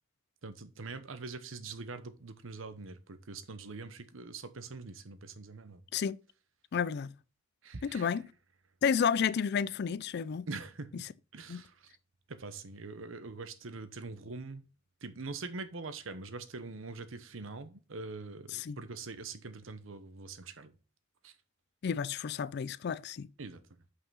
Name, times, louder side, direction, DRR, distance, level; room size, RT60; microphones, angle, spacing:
voice 1, 0.4-5.8 7.6-8.2 10.5-11.0 11.3-11.9 12.3-14.6 15.0-20.7 21.2-21.3 23.4-23.6, right 3 dB, 90° right, 0.9 m, -43 dB
voice 2, 6.7-7.1 7.8-8.2 8.8-10.5 11.5-11.6 18.5-18.8 21.8-23.3, left 7 dB, 55° left, 0.4 m, -31 dB
5.7 x 5.5 x 5.5 m
head